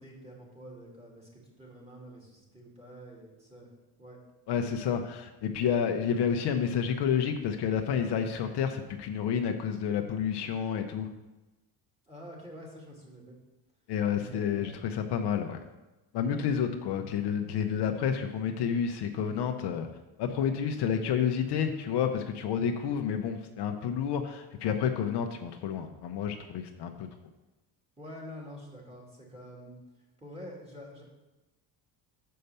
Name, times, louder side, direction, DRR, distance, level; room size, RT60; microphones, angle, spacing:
voice 1, 0.0-3.7 4.0-4.2 12.1-13.4 14.2-14.8 28.0-29.8 30.2-31.0, equal, 15° right, -3 dB, 2.2 m, -47 dB
voice 2, 4.5-11.1 13.9-15.6 16.1-19.9 20.2-27.1, left 7 dB, 60° left, 5 dB, 0.8 m, -30 dB
6.7 x 5.5 x 6.7 m, 1.0 s
cardioid pair, 135°, 46 cm